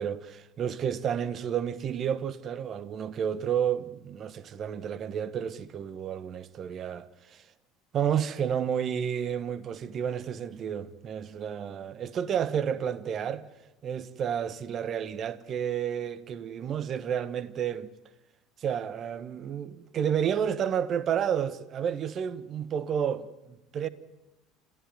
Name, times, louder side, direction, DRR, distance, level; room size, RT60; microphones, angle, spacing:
voice 1, 0.0-7.5 7.9-13.5 13.8-17.9 18.6-23.9, right 8 dB, 40° right, 1.4 m, -31 dB
28.5 x 15.0 x 9.4 m
figure-of-eight pair, 65°, 0 cm